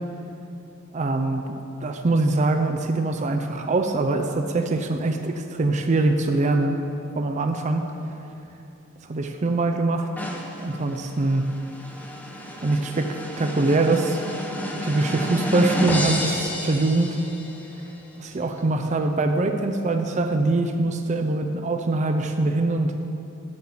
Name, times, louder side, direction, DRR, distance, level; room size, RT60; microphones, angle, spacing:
voice 1, 0.9-6.8 7.2-7.9 9.1-10.1 10.6-11.4 12.6-14.2 14.8-17.2 18.2-22.9, right 2 dB, 35° right, 5 dB, 0.5 m, -23 dB
sound 1, 10.2-17.7, equal, 10° left, 0.9 m, -30 dB
7.7 x 7.4 x 7.3 m, 2.8 s
head